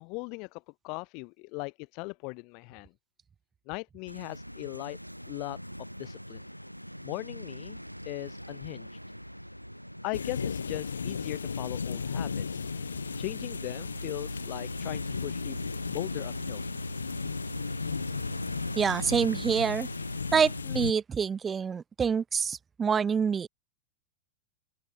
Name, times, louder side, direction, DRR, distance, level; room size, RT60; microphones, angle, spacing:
voice 1, 0.0-2.9 3.7-5.0 5.3-5.6 6.0-6.4 7.0-7.8 8.0-8.9 10.0-12.6 13.2-15.6 15.9-16.6, left 31 dB, 45° left, 1.0 m, -39 dB
sound 1, 4.1-20.6, equal, 90° left, 2.9 m, -40 dB
sound 2, 10.1-20.9, left 6 dB, 75° left, 2.0 m, -36 dB
voice 2, 18.8-19.9 20.3-23.5, right 6 dB, 20° right, 0.6 m, -27 dB
open air
figure-of-eight pair, 90°, 0 cm